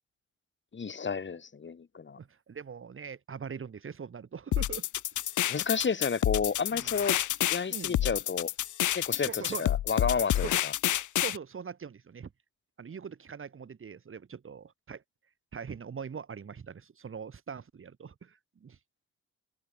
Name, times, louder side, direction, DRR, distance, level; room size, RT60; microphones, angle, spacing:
voice 1, 0.7-2.2 5.5-7.2 7.5-8.5 8.9-10.7, left 5 dB, 40° left, 7.5 m, -31 dB
voice 2, 2.2-4.9 6.7-6.9 7.7-8.0 9.2-9.7 10.4-10.6 11.2-12.3 12.8-15.0 15.5-18.8, right 6 dB, 45° right, 6.0 m, -42 dB
sound 1, 4.5-11.4, left 13 dB, 75° left, 2.6 m, -29 dB
cardioid pair, 90°, 30 cm